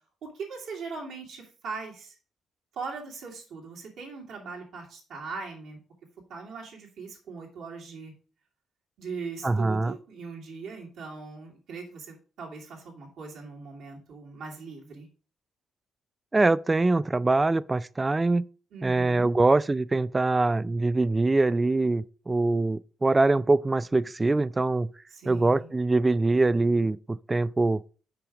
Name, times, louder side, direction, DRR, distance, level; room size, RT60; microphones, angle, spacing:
voice 1, 0.2-2.1 2.7-5.8 6.3-8.1 9.0-15.1 18.7-19.3 25.1-25.7, right 4 dB, 75° right, 2.5 m, -40 dB
voice 2, 9.4-9.9 16.3-18.4 18.8-24.9 25.3-27.8, right 2 dB, 25° right, 0.4 m, -23 dB
5.9 x 5.0 x 4.9 m
supercardioid pair, 55°, 0 cm